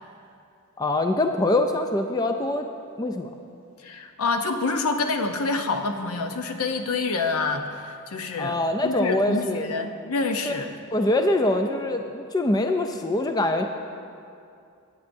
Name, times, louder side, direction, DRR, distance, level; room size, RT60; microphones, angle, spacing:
voice 1, 0.8-2.7 3.0-3.3 8.4-9.7 10.4-10.5 10.9-13.6, left 1 dB, 15° left, 6 dB, 0.3 m, -24 dB
voice 2, 3.8-10.7, left 3 dB, 80° left, 5 dB, 0.7 m, -27 dB
17.5 x 8.6 x 2.6 m, 2.5 s
head